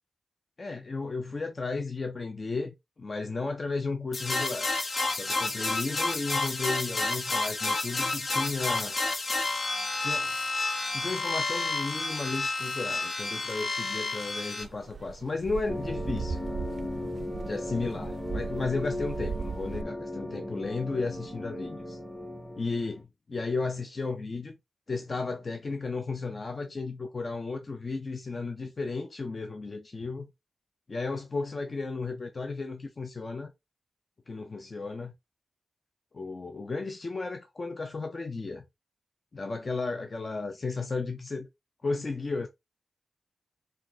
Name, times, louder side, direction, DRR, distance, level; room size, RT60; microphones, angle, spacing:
voice 1, 0.6-4.7 5.1-9.0 10.0-10.3 10.9-16.4 17.4-22.0 22.6-24.6 24.9-30.3 30.9-33.5 34.3-35.1 36.1-38.6 39.3-41.5 41.8-42.5, left 3 dB, 45° left, 0.5 m, -34 dB
sound 1, 4.1-14.6, left 3 dB, 65° left, 0.9 m, -30 dB
sound 2, 14.6-19.8, right 5 dB, 65° right, 0.4 m, -38 dB
sound 3, 15.7-23.0, left 1 dB, 5° left, 1.0 m, -37 dB
3.7 x 2.5 x 3.9 m
cardioid pair, 75°, 0 cm